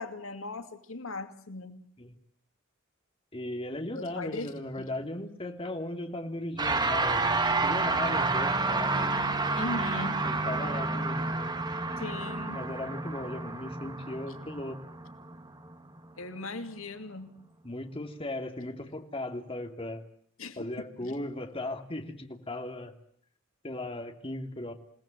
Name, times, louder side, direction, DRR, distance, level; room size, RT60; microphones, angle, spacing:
voice 1, 0.0-1.8 3.9-4.9 9.5-10.3 12.0-12.6 16.2-17.4 20.4-20.6 21.0-21.1, left 2 dB, 85° left, 8 dB, 2.5 m, -38 dB
voice 2, 3.3-9.1 10.2-11.5 12.5-14.8 17.6-20.0 20.6-22.9 23.6-24.7, left 1 dB, 30° left, 5 dB, 3.0 m, -37 dB
sound 1, 6.6-16.1, right 3 dB, 20° right, 1.9 m, -30 dB
28.5 x 18.5 x 9.1 m, 0.64 s
head